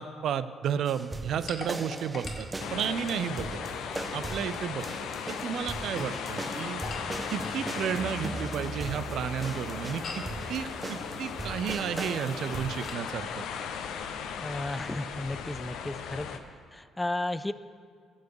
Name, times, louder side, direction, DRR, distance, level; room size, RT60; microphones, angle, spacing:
voice 1, 0.0-3.6 4.1-4.9 5.3-6.8 7.3-10.2 10.5-13.5, right 8 dB, 70° right, 14 dB, 0.5 m, -32 dB
sound 1, 0.9-12.9, right 2 dB, 20° right, 0.7 m, -39 dB
sound 2, 1.5-3.3 5.7-7.7 10.0-10.4 12.8-13.1, left 3 dB, 55° left, 1.9 m, -43 dB
sound 3, 2.6-16.4, left 7 dB, 75° left, 0.7 m, -37 dB
voice 2, 14.4-16.3 16.7-17.5, left 1 dB, 15° left, 12 dB, 0.4 m, -33 dB
15.5 x 7.2 x 4.7 m, 2.1 s
supercardioid pair, 65°, 0 cm